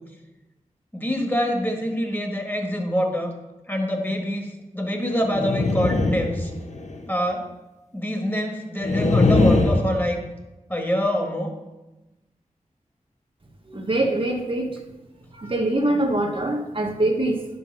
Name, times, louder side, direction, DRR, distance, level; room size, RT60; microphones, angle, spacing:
voice 1, 0.9-3.3 3.7-6.5 7.1-7.5 7.9-10.2 10.7-11.6, equal, 15° left, 2 dB, 1.6 m, -25 dB
sound 1, 5.2-7.0 8.8-9.8, left 2 dB, 60° left, 1.2 m, -20 dB
voice 2, 13.6-14.8 15.3-17.5, right 1 dB, 40° right, 2 dB, 1.1 m, -24 dB
11.0 x 5.6 x 5.5 m, 1.0 s
wide cardioid pair, 85°, 13 cm